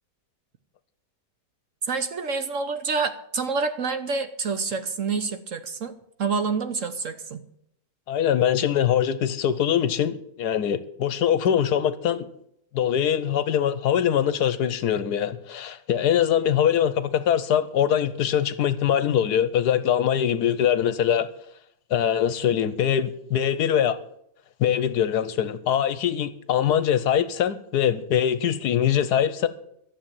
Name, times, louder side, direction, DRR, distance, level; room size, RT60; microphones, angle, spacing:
voice 1, 1.8-5.9 6.2-7.4, right 4 dB, 55° right, 1.1 m, -27 dB
voice 2, 8.1-12.3 12.7-21.3 21.9-24.0 24.6-29.5, left 9 dB, 70° left, 1.2 m, -23 dB
12.5 x 7.4 x 9.0 m
omnidirectional pair, 1.9 m